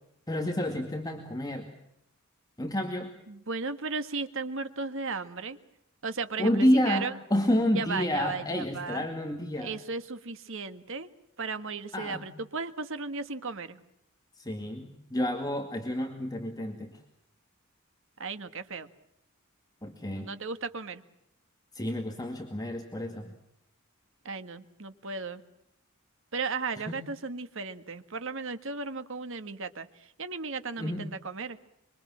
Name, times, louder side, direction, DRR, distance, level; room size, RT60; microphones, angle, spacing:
voice 1, 0.3-1.7 2.6-3.1 6.4-9.8 11.9-12.3 14.4-17.0 19.8-20.3 21.7-23.3 26.9-27.0 30.8-31.1, left 1 dB, 20° left, 3 dB, 2.2 m, -29 dB
voice 2, 3.3-5.6 6.0-7.1 7.8-9.1 9.6-11.1 11.4-13.8 18.2-18.9 20.1-21.0 24.3-25.4 26.3-31.6, right 4 dB, 70° right, 10 dB, 1.6 m, -35 dB
25.5 x 24.5 x 7.4 m, 0.80 s
head